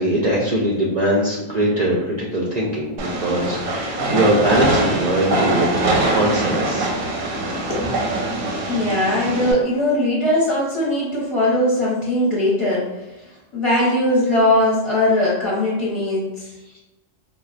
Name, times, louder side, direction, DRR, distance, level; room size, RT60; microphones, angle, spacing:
voice 1, 0.0-6.9 8.6-8.8 16.7-16.8, right 1 dB, 60° right, -5 dB, 0.4 m, -21 dB
Train, 3.0-9.5, right 2 dB, 90° right, 1.0 m, -23 dB
voice 2, 7.7-8.3 8.6-16.5, left 1 dB, 30° left, -8 dB, 0.7 m, -20 dB
3.7 x 2.2 x 2.4 m, 1.0 s
omnidirectional pair, 1.3 m